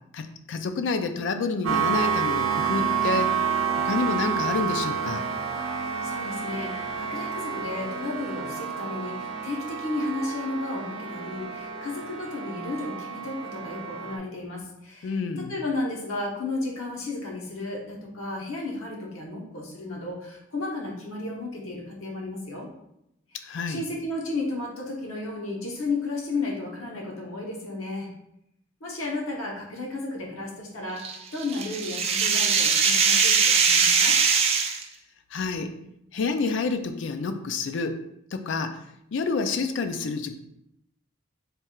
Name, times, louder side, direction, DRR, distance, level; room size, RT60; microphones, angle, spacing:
voice 1, 0.1-3.3 3.8-5.3 15.0-15.5 23.4-23.8 35.3-35.7 36.1-38.0 38.3-38.8 39.1-40.4, left 4 dB, 60° left, 8 dB, 0.4 m, -28 dB
sound 1, 1.6-14.2, right 6 dB, 85° right, 0.6 m, -29 dB
voice 2, 6.0-22.7 23.7-28.1 28.8-34.2, left 2 dB, 80° left, -1 dB, 0.9 m, -33 dB
sound 2, 31.0-34.8, right 5 dB, 30° right, 0.3 m, -21 dB
3.3 x 2.4 x 4.3 m, 0.79 s
head